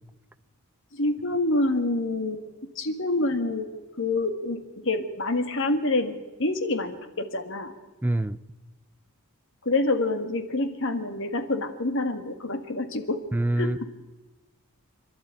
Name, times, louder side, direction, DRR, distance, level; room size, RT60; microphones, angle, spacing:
voice 1, 0.9-2.5 2.8-6.1 6.4-7.7 9.6-13.2 13.6-13.8, left 2 dB, 60° left, 1.9 m, -27 dB
voice 2, 8.0-8.4 13.3-13.8, right 1 dB, 10° right, 0.6 m, -25 dB
26.5 x 11.5 x 9.1 m
head